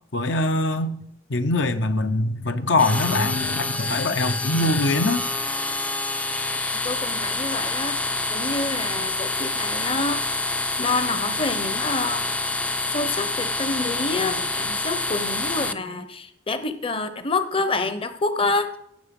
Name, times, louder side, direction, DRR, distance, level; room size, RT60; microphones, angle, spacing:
voice 1, 0.1-1.0 1.3-5.2, left 2 dB, 70° left, 8 dB, 0.8 m, -23 dB
sound 1, 2.8-15.7, left 2 dB, 5° left, 0.4 m, -27 dB
voice 2, 6.7-12.2 12.8-18.8, left 3 dB, 30° left, 11 dB, 0.8 m, -28 dB
17.0 x 7.2 x 5.3 m, 0.75 s
head